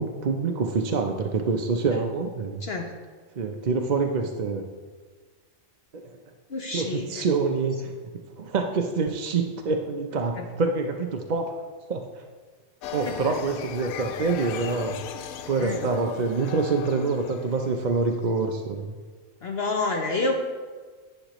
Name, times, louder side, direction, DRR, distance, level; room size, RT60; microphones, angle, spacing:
voice 1, 0.0-2.6 3.4-4.6 5.9-6.1 6.7-7.9 8.4-11.6 11.9-12.1 12.9-15.0 15.5-18.9, right 4 dB, 50° right, 3 dB, 0.5 m, -26 dB
voice 2, 2.6-2.9 6.5-7.2 13.0-13.3 15.6-15.8 19.4-20.3, left 3 dB, 50° left, 3 dB, 0.9 m, -28 dB
sound 1, 12.8-18.4, left 9 dB, 85° left, 1.1 m, -37 dB
11.5 x 9.1 x 3.0 m, 1.5 s
omnidirectional pair, 1.5 m